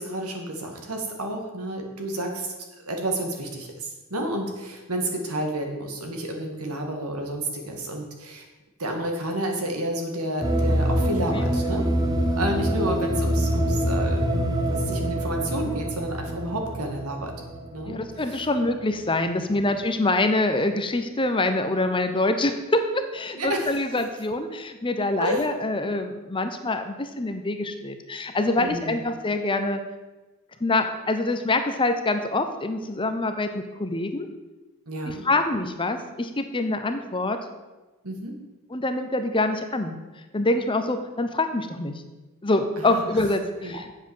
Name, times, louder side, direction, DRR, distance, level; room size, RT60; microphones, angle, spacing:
voice 1, 0.0-8.5 8.8-11.8 12.4-17.3 17.7-18.5 19.2-19.4 23.3-23.8 25.2-25.5 28.6-29.0 34.9-35.3 38.0-38.3 42.8-43.1 43.6-43.8, right 1 dB, 80° right, 3 dB, 2.1 m, -30 dB
sound 1, 10.4-18.6, equal, 15° right, 1.0 m, -25 dB
voice 2, 17.8-29.8 30.6-34.3 35.1-37.4 38.7-40.0 40.3-41.9 42.4-43.9, left 2 dB, 25° left, 7 dB, 0.8 m, -25 dB
8.1 x 7.5 x 7.2 m, 1.1 s
head